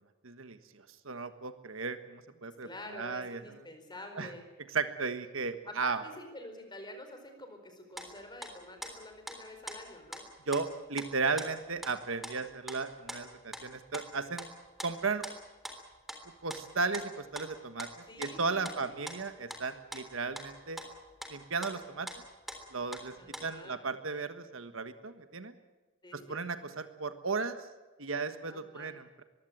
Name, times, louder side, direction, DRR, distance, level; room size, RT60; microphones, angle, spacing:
voice 1, 0.2-3.4 4.2-4.3 4.7-6.0 10.5-14.5 14.8-15.2 16.4-20.8 21.3-22.1 22.7-23.1 23.4-25.5 26.1-27.6 28.0-29.2, right 4 dB, 70° right, 9 dB, 1.4 m, -35 dB
voice 2, 2.3-4.4 5.7-10.2 18.1-18.9 23.2-23.8 26.0-26.4 28.5-28.9, left 1 dB, 20° left, 6 dB, 4.6 m, -48 dB
sound 1, 8.0-8.1 8.4-8.5 8.8-9.4 9.7-10.2 10.5-11.9 12.2-14.5 14.8-15.4 15.6-15.8 16.1-16.2 16.5-17.1 17.3-17.9 18.2-18.8 19.1-19.2 19.5-19.6 19.9-20.5 20.8-23.0 23.3-23.6, equal, ahead, 3.4 m, -43 dB
23.0 x 16.0 x 8.9 m, 1.2 s
head